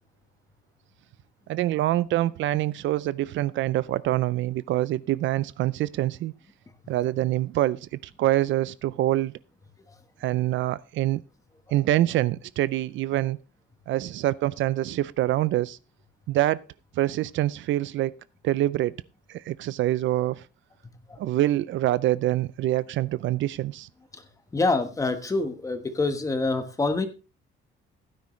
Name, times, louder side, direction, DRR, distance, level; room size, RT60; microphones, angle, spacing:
voice 1, 1.5-6.3 6.9-9.3 10.2-11.2 11.7-13.4 13.9-15.8 16.3-16.6 17.0-18.1 18.4-19.0 19.3-20.4 21.2-23.9, right 14 dB, 70° right, 0.5 m, -25 dB
voice 2, 24.5-27.1, left 3 dB, 15° left, 1.2 m, -26 dB
16.0 x 9.6 x 3.2 m
cardioid pair, 170°, 21 cm